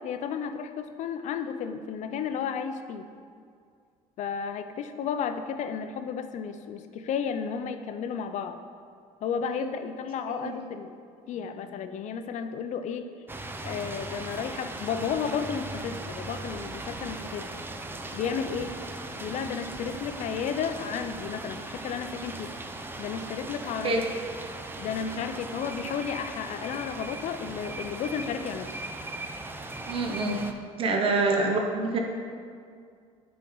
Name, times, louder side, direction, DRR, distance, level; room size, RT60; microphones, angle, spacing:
voice 1, 0.0-3.1 4.2-8.6 9.2-10.9 11.3-13.1 13.6-17.5 18.1-18.8 19.2-22.5 23.0-24.0 24.8-28.7 30.9-31.0, left 7 dB, 60° left, 8 dB, 0.6 m, -33 dB
sound 1, 13.3-30.5, right 2 dB, 15° right, 0.5 m, -38 dB
voice 2, 29.9-30.4 30.8-32.0, right 3 dB, 40° right, 1 dB, 1.0 m, -26 dB
8.8 x 4.4 x 3.9 m, 2.2 s
cardioid pair, 100°, 14 cm